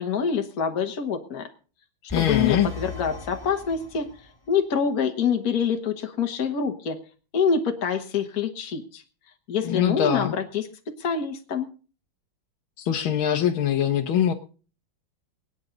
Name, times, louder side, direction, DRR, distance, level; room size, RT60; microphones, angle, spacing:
voice 1, 0.0-1.5 2.0-4.1 4.5-7.0 7.3-9.0 9.5-11.7, left 6 dB, 50° left, 4 dB, 1.7 m, -26 dB
voice 2, 2.1-2.7 9.6-10.4 12.8-14.3, left 9 dB, 75° left, 3 dB, 1.9 m, -23 dB
sound 1, 2.1-4.4, left 6 dB, 10° left, 1.8 m, -37 dB
23.5 x 9.6 x 3.9 m, 0.37 s
omnidirectional pair, 2.3 m